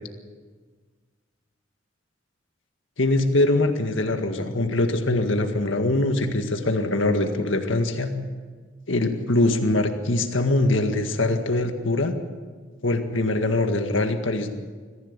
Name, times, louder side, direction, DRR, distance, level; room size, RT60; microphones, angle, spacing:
voice 1, 3.0-8.1 8.9-12.1 12.8-14.5, left 2 dB, 85° left, 6 dB, 1.9 m, -23 dB
22.5 x 15.0 x 8.2 m, 1.5 s
head